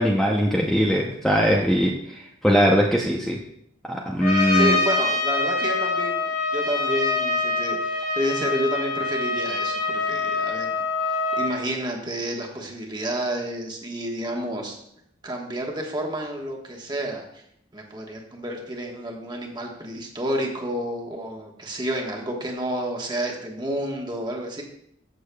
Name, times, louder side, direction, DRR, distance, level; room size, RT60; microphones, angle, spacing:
voice 1, 0.0-3.4 3.9-4.8, equal, ahead, -2 dB, 0.6 m, -21 dB
Trumpet, 4.2-11.6, left 3 dB, 50° left, 2.2 m, -25 dB
voice 2, 4.5-10.8 11.1-14.8 15.2-17.4 17.7-24.6, right 1 dB, 20° right, 0 dB, 1.3 m, -30 dB
15.0 x 6.8 x 2.3 m, 0.73 s
head